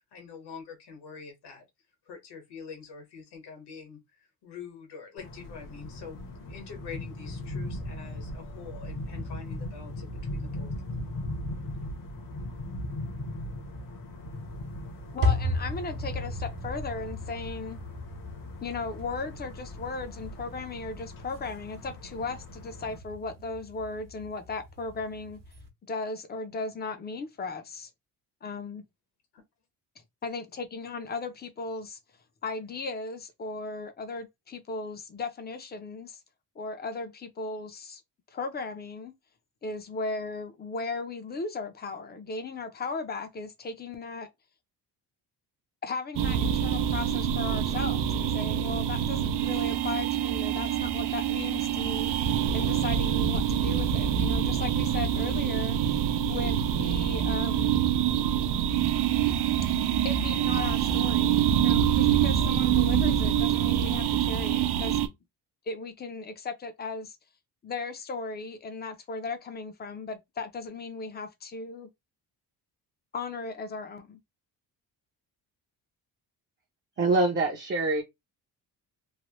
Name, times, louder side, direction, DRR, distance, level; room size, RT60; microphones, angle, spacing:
voice 1, 0.0-1.6 2.0-10.7 29.3-29.4, left 6 dB, 75° left, 1.5 m, -45 dB
sound 1, 5.2-23.0, left 1 dB, 55° left, 1.0 m, -39 dB
sound 2, 14.3-25.7, left 2 dB, 55° right, 0.9 m, -36 dB
voice 2, 15.1-17.8 18.6-25.4 25.9-27.9 28.4-28.8 30.2-32.0 32.4-36.2 36.6-38.0 38.3-39.1 39.6-44.3 45.8-55.8 56.3-57.8 59.7-65.1 65.7-67.2 67.6-71.9 73.1-74.2, left 3 dB, 25° left, 0.5 m, -36 dB
sound 3, 46.2-65.1, right 9 dB, 80° right, 0.6 m, -26 dB
voice 3, 77.0-78.0, right 3 dB, 25° right, 0.6 m, -24 dB
3.1 x 2.1 x 3.0 m
cardioid pair, 160°, 40 cm